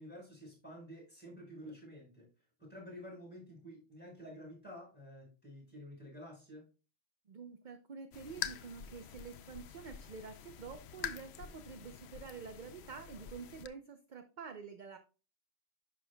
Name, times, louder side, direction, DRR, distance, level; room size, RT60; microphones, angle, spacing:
voice 1, 0.0-2.3 2.6-6.6, equal, 10° left, -4 dB, 4.7 m, -50 dB
voice 2, 7.3-15.0, right 5 dB, 45° right, 7 dB, 0.8 m, -48 dB
sound 1, 8.1-13.7, left 9 dB, 70° left, 0.8 m, -46 dB
11.0 x 6.3 x 2.2 m, 0.33 s
omnidirectional pair, 1.2 m